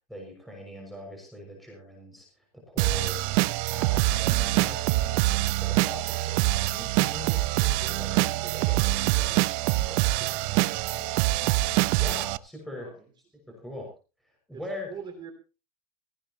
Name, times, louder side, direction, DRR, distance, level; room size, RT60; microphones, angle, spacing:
voice 1, 0.1-11.7 12.0-12.9 13.5-13.9 14.5-14.9, left 1 dB, ahead, 0 dB, 6.1 m, -42 dB
sound 1, 2.8-12.4, right 18 dB, 50° right, 0.7 m, -25 dB
voice 2, 12.7-13.1 13.5-13.6 14.5-15.3, right 7 dB, 25° right, 5 dB, 3.0 m, -43 dB
17.5 x 16.0 x 3.0 m, 0.33 s
supercardioid pair, 140°, 19 cm